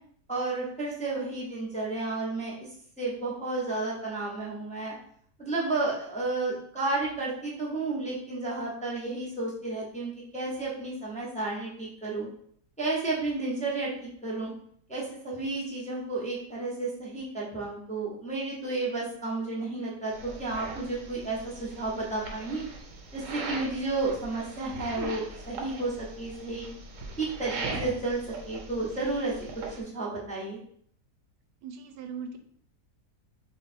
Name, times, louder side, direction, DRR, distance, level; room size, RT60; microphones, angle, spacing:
voice 1, 0.3-2.5 3.0-4.9 5.4-12.3 12.8-14.5 14.9-22.7 23.1-26.7 27.2-29.3 29.8-30.6, right 3 dB, 5° left, -6 dB, 0.7 m, -32 dB
sound 1, 20.1-29.8, right 3 dB, 60° right, 1.0 m, -40 dB
voice 2, 31.6-32.4, right 6 dB, 90° right, 6 dB, 1.2 m, -39 dB
3.2 x 3.2 x 4.3 m, 0.64 s
omnidirectional pair, 1.8 m